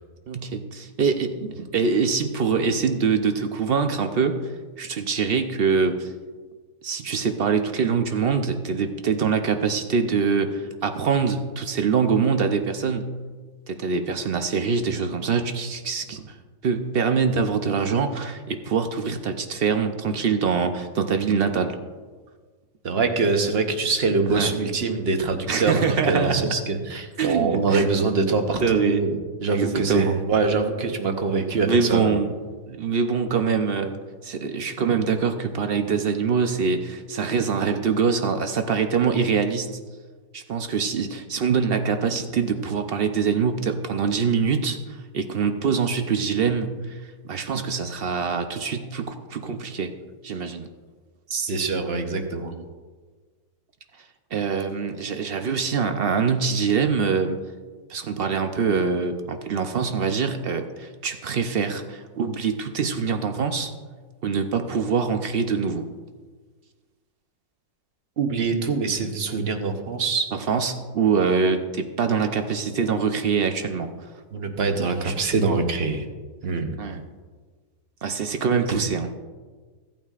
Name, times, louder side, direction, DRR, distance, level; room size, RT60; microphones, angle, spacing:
voice 1, 0.3-6.1 6.8-13.1 13.7-16.4 16.6-21.8 24.3-24.5 25.5-26.6 27.2-27.9 28.6-29.0 29.5-30.2 31.6-32.3 32.7-39.7 40.3-49.9 50.2-50.7 52.5-52.6 54.3-57.4 57.9-63.7 64.2-65.9 70.3-73.9 75.0-75.1 76.8-77.0 78.0-79.1, right 5 dB, 60° right, 7 dB, 0.6 m, -24 dB
voice 2, 22.8-29.1 29.4-32.1 51.3-52.5 68.2-70.3 74.3-76.1 76.4-76.8 78.7-78.8, right 4 dB, 45° right, 5 dB, 1.0 m, -24 dB
16.0 x 9.0 x 2.4 m, 1.4 s
omnidirectional pair, 1.7 m